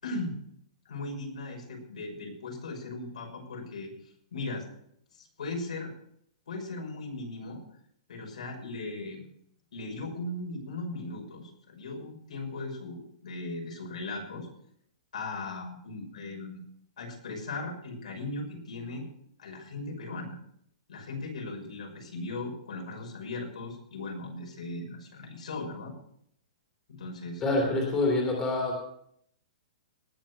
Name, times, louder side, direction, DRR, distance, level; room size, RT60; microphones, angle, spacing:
voice 1, 0.0-0.3 0.9-3.9 4.3-4.6 5.1-5.9 6.5-7.6 8.1-9.3 9.7-14.5 15.1-16.6 17.0-19.0 19.4-20.4 20.9-25.9 26.9-27.4, left 2 dB, 85° left, 1 dB, 5.9 m, -38 dB
voice 2, 27.4-28.9, left 2 dB, 10° left, -1 dB, 2.9 m, -27 dB
19.0 x 7.5 x 5.5 m, 0.68 s
hypercardioid pair, 180°, 4 cm